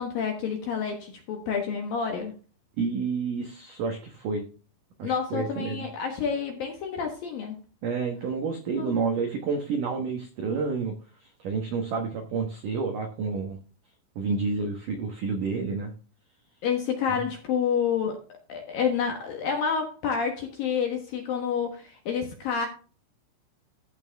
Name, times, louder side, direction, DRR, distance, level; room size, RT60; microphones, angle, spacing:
voice 1, 0.0-2.3 5.0-7.6 8.7-8.9 16.6-18.2 18.5-22.7, left 6 dB, 65° left, 3 dB, 2.4 m, -29 dB
voice 2, 2.8-4.4 5.0-5.9 7.8-10.9 11.2-13.6 14.2-15.9 17.1-17.2, right 4 dB, 80° right, 4 dB, 1.8 m, -29 dB
15.0 x 5.6 x 3.4 m, 0.36 s
omnidirectional pair, 5.7 m